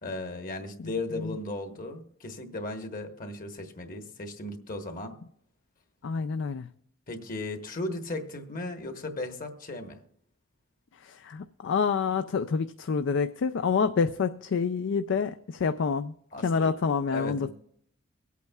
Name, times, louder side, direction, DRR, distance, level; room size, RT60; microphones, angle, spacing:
voice 1, 0.0-5.2 7.1-10.0 16.3-16.7 17.1-17.5, left 2 dB, 40° left, 1.2 m, -36 dB
voice 2, 6.0-6.7 10.9-17.5, left 5 dB, 60° left, 0.4 m, -28 dB
23.5 x 8.4 x 2.3 m
head